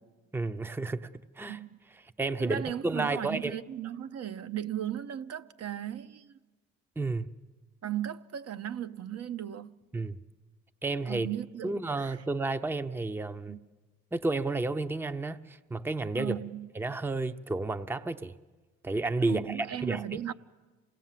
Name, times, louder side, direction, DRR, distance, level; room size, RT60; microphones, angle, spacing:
voice 1, 0.3-1.1 1.4-1.6 2.2-3.6 7.0-7.3 9.9-10.2 10.8-11.3 11.6-13.6 14.1-16.4 16.7-18.3 18.8-20.2, right 3 dB, 5° right, 0.7 m, -31 dB
voice 2, 1.5-1.8 2.4-6.4 7.8-9.7 11.1-12.2 13.5-13.6 16.1-16.7 19.2-20.3, right 10 dB, 55° right, 0.8 m, -36 dB
27.0 x 18.5 x 7.5 m
cardioid pair, 90°, 30 cm